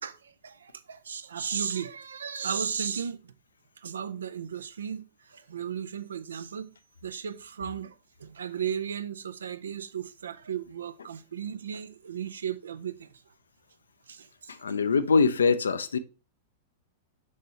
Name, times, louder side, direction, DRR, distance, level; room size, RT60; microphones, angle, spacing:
voice 1, 0.0-3.3 3.8-6.7 7.0-13.2 14.1-14.8, right 8 dB, 70° right, 0.5 m, -35 dB
voice 2, 14.5-16.0, left 4 dB, 75° left, 0.5 m, -23 dB
6.4 x 5.5 x 2.9 m
figure-of-eight pair, 95°, 0 cm